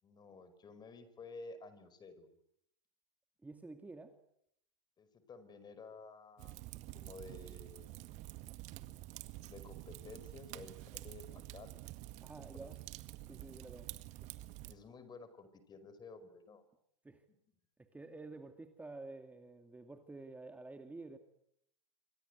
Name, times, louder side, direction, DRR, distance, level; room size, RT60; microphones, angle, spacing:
voice 1, 0.0-2.3 5.0-6.6 6.9-8.3 9.2-11.8 12.5-12.7 13.1-13.2 13.7-13.9 14.6-16.6, left 3 dB, 25° left, 12 dB, 5.4 m, -53 dB
voice 2, 3.4-4.1 12.2-12.8 13.3-13.9 17.0-17.2 17.8-21.2, right 3 dB, 10° right, 7 dB, 2.2 m, -50 dB
Fire, 6.4-14.7, right 17 dB, 50° right, 1.9 m, -49 dB
28.0 x 24.5 x 8.2 m, 0.74 s
hypercardioid pair, 90°, 16 cm